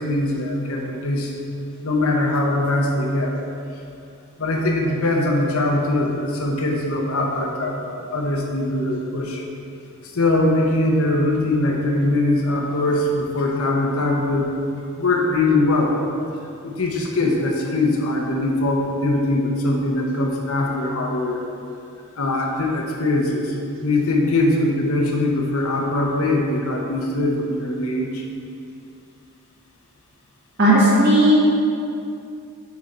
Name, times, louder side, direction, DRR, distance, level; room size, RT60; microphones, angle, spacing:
voice 1, 0.0-1.4 1.8-3.3 4.4-9.4 10.1-14.5 15.0-16.0 16.6-21.4 22.2-23.6 23.8-28.2, left 2 dB, 70° left, 0 dB, 0.9 m, -21 dB
voice 2, 30.6-31.3, right 1 dB, 50° right, -8 dB, 1.7 m, -14 dB
8.6 x 3.9 x 4.3 m, 2.5 s
head